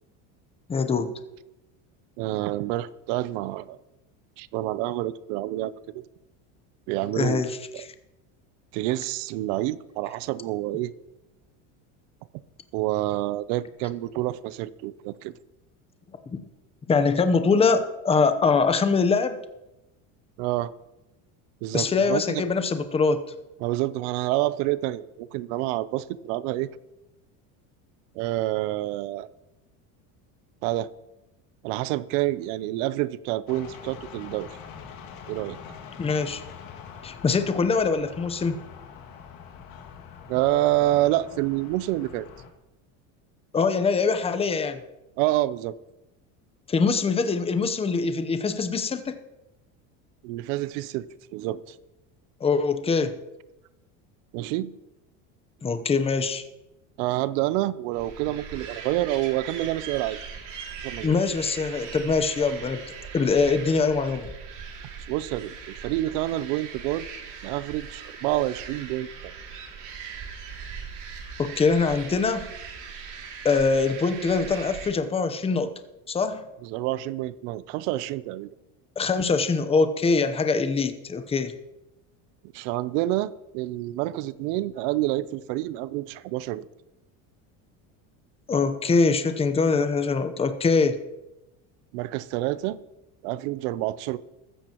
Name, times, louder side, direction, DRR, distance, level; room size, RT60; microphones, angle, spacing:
voice 1, 0.7-1.1 7.2-7.9 16.3-16.4 16.9-19.4 21.7-23.2 36.0-36.4 37.0-38.6 43.5-44.8 46.7-49.2 52.4-53.1 55.6-56.4 61.0-62.8 63.1-64.3 71.4-72.5 73.4-75.7 76.1-76.4 79.0-81.5 88.5-91.0, left 4 dB, 15° left, 0.8 m, -23 dB
voice 2, 2.2-3.8 4.4-6.0 6.9-7.4 7.7-7.8 8.7-10.9 12.7-15.3 20.4-20.7 21.6-22.4 23.6-26.7 28.1-29.3 30.6-30.9 31.6-34.6 35.3-35.6 40.3-42.3 45.2-45.8 50.2-51.8 54.3-54.7 57.0-60.2 60.8-61.1 65.1-67.1 67.4-69.1 76.6-78.5 82.5-86.7 91.9-92.8 93.2-94.2, right 16 dB, 75° right, 0.7 m, -28 dB
sound 1, 33.5-42.5, left 7 dB, 65° left, 2.2 m, -44 dB
sound 2, 57.9-74.9, right 6 dB, 50° right, 2.7 m, -40 dB
14.5 x 14.0 x 3.0 m
cardioid pair, 140°, 38 cm